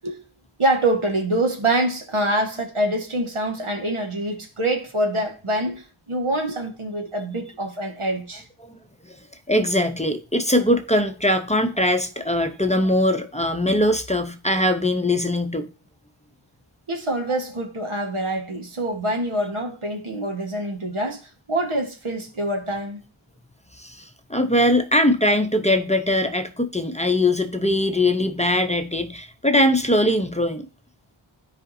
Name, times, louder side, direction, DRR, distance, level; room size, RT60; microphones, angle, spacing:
voice 1, 0.6-8.4 16.9-21.2 21.5-23.0, right 1 dB, 85° right, 1.5 m, -25 dB
voice 2, 9.5-15.7 23.8-30.7, left 1 dB, 15° left, 0.7 m, -21 dB
12.5 x 5.0 x 2.7 m
wide cardioid pair, 50°, 49 cm